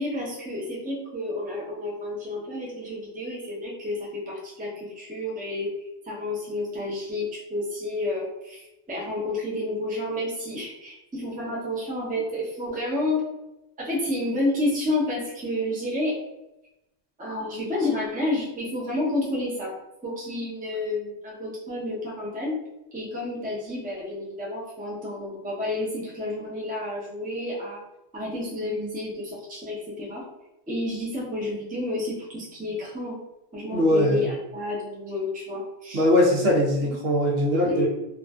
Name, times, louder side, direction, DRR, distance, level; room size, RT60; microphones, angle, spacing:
voice 1, 0.0-5.7 6.0-13.2 13.8-16.1 17.2-19.7 20.0-22.6 22.9-27.8 28.1-30.2 30.7-33.2 33.5-36.1 36.8-37.0 37.5-37.9, left 1 dB, 10° right, -6 dB, 0.6 m, -30 dB
voice 2, 33.7-34.3 35.9-37.9, left 1 dB, 70° right, -2 dB, 0.9 m, -21 dB
2.5 x 2.4 x 2.3 m, 0.93 s
omnidirectional pair, 1.1 m